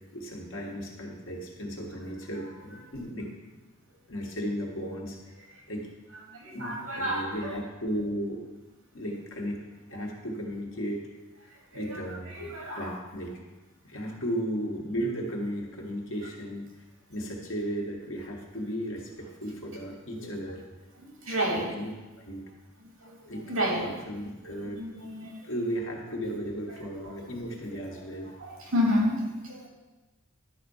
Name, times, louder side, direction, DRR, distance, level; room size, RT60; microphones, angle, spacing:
voice 1, 0.1-3.3 4.1-5.2 5.7-5.9 6.5-8.4 8.9-9.6 9.9-11.0 11.4-13.4 13.8-16.8 17.1-20.6 21.7-22.4 23.3-23.5 23.8-24.8 25.4-28.3, equal, 60° left, -1 dB, 1.6 m, -35 dB
voice 2, 6.3-7.5 11.7-13.0 20.2-20.3 21.0-21.7 23.0-23.9 24.4-25.5 28.4-29.7, equal, 75° right, -2 dB, 2.5 m, -31 dB
11.0 x 4.2 x 5.6 m, 1.2 s
head